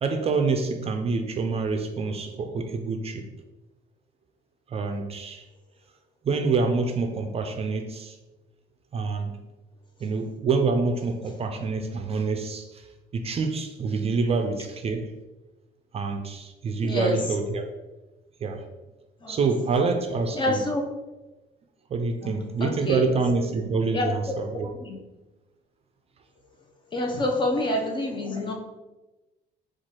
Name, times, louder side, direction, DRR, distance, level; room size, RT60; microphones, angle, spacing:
voice 1, 0.0-3.3 4.7-5.4 6.2-8.2 8.9-9.4 10.0-12.9 13.1-15.1 15.9-17.6 18.4-18.6 19.3-20.6 21.9-24.7, right 4 dB, 35° right, 6 dB, 0.4 m, -26 dB
voice 2, 16.8-17.2 19.2-19.5 20.3-20.8 22.2-23.1 23.9-24.1 24.8-25.0 26.9-28.5, left 1 dB, 30° left, 2 dB, 0.7 m, -27 dB
4.4 x 2.4 x 4.3 m, 1.1 s
cardioid pair, 110°, 17 cm